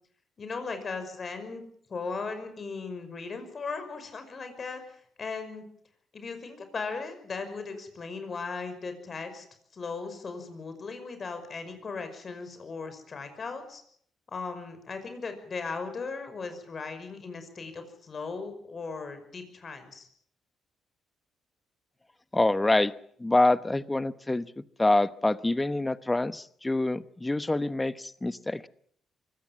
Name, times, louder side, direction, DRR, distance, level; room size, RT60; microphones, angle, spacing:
voice 1, 0.4-1.6 1.9-5.6 6.1-9.5 9.7-13.8 14.3-20.1, left 4 dB, 40° left, 8 dB, 5.7 m, -37 dB
voice 2, 22.3-22.9 23.2-28.7, left 2 dB, 15° left, 14 dB, 1.0 m, -26 dB
24.0 x 17.5 x 7.4 m, 0.63 s
cardioid pair, 90°, 0 cm